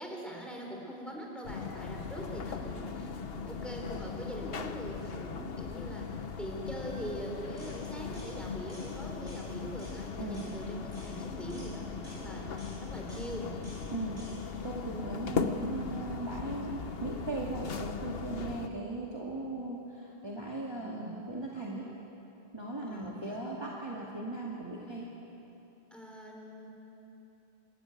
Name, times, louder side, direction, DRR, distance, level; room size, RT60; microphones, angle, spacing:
voice 1, 0.0-13.6 20.7-21.2 22.8-23.4 25.9-26.7, equal, ahead, -1 dB, 3.9 m, -42 dB
sound 1, 1.4-18.7, left 5 dB, 70° left, 1.2 m, -39 dB
sound 2, 7.6-7.8 8.1-8.3 8.7-8.9 9.3-9.4 9.8-10.0 10.3-10.5 10.9-11.1 11.5-11.7 12.0-12.2 12.6-12.8 13.1-13.3 13.6-13.8 14.2-14.3, equal, 55° right, 8.1 m, -53 dB
voice 2, 10.2-10.5 13.9-14.1 14.6-21.9 22.5-25.1, right 2 dB, 25° right, -4 dB, 2.2 m, -38 dB
27.0 x 14.0 x 9.1 m, 3.0 s
omnidirectional pair, 1.0 m